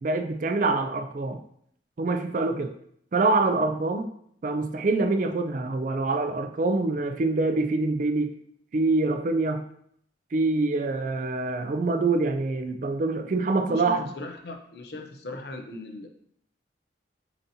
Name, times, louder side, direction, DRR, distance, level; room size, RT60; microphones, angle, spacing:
voice 1, 0.0-1.4 2.0-2.7 3.1-4.1 4.4-8.4 8.7-9.7 10.3-14.1, right 3 dB, 45° right, 8 dB, 0.3 m, -25 dB
voice 2, 13.7-16.1, left 2 dB, 60° left, 4 dB, 0.6 m, -38 dB
7.0 x 2.8 x 2.7 m, 0.67 s
head